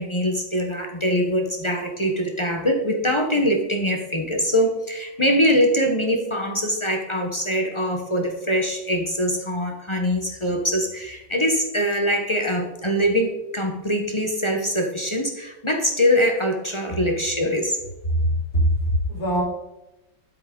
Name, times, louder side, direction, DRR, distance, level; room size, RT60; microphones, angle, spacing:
voice 1, 0.0-17.8, equal, 25° left, 2 dB, 0.6 m, -23 dB
voice 2, 18.2-19.4, equal, 50° left, -5 dB, 4.2 m, -22 dB
9.9 x 7.9 x 3.8 m, 0.92 s
omnidirectional pair, 2.2 m